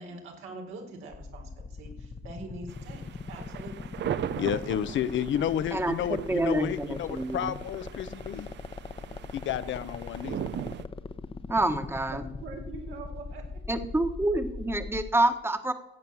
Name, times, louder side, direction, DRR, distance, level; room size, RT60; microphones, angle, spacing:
voice 1, 0.0-3.0 3.3-3.9 12.1-13.4, right 2 dB, 85° right, 2 dB, 4.3 m, -43 dB
sound 1, 1.1-15.1, left 4 dB, 25° left, 1.0 m, -39 dB
sound 2, 2.7-10.9, right 10 dB, 65° right, 0.8 m, -39 dB
voice 2, 4.4-8.5 9.3-10.4, left 10 dB, 75° left, 13 dB, 0.9 m, -31 dB
voice 3, 6.3-7.5 11.5-12.2 13.7-15.7, right 2 dB, 10° right, 9 dB, 1.4 m, -27 dB
16.0 x 8.0 x 7.2 m, 0.88 s
cardioid pair, 90°, 20 cm